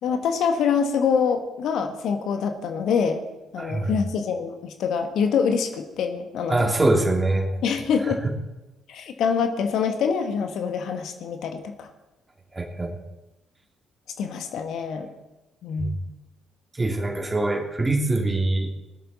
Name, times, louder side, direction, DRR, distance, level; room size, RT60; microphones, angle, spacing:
voice 1, 0.0-3.2 3.5-6.7 7.6-8.2 8.9-11.9 14.2-15.1 15.6-16.0, left 6 dB, 60° left, 6 dB, 1.5 m, -25 dB
voice 2, 3.6-4.0 6.5-7.6 8.2-8.3 12.5-13.0 15.8-15.9 16.8-18.7, right 2 dB, 20° right, 3 dB, 2.7 m, -23 dB
19.5 x 12.5 x 4.2 m, 1.0 s
figure-of-eight pair, 45°, 0 cm